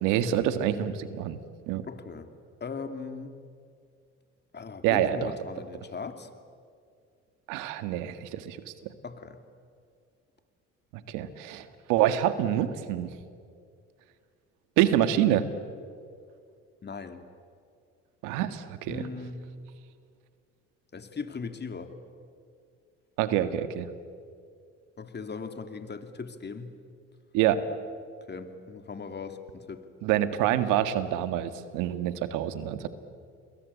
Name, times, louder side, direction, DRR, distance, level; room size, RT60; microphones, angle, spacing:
voice 1, 0.0-1.4 1.7-1.8 4.8-5.3 7.5-8.6 8.8-8.9 10.9-13.1 14.8-15.4 18.2-19.1 23.2-23.9 27.3-27.6 30.0-32.9, right 11 dB, 80° right, 11 dB, 1.8 m, -26 dB
voice 2, 1.9-2.3 2.6-3.4 4.5-6.3 9.0-9.4 16.8-17.3 18.9-19.4 20.9-21.9 25.0-26.7 28.3-29.9, left 5 dB, 35° left, 7 dB, 2.8 m, -39 dB
29.5 x 22.0 x 8.5 m, 2.3 s
supercardioid pair, 65°, 31 cm